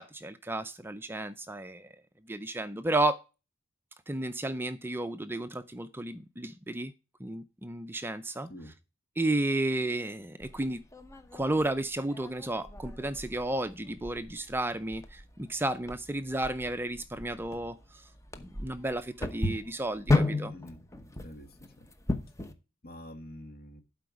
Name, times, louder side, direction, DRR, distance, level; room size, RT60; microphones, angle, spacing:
voice 1, 0.0-3.2 4.1-6.9 7.2-8.5 9.2-10.8 11.3-18.1 18.5-20.5, right 2 dB, 10° right, 0.5 m, -33 dB
sound 1, 10.4-22.5, left 2 dB, 15° left, 0.9 m, -35 dB
voice 2, 21.2-21.9 22.8-23.8, left 1 dB, 50° left, 1.5 m, -47 dB
12.0 x 5.0 x 4.7 m
head